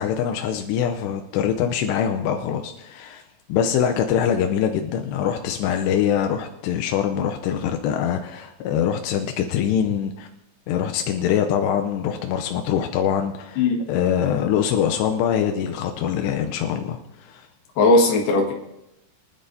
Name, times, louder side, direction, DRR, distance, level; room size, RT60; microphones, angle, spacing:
voice 1, 0.0-3.2 3.5-10.3 10.7-17.5, left 9 dB, 90° left, 5 dB, 2.9 m, -23 dB
voice 2, 17.8-18.5, left 2 dB, 70° left, 0 dB, 3.6 m, -17 dB
23.5 x 11.0 x 2.7 m, 0.91 s
omnidirectional pair, 4.7 m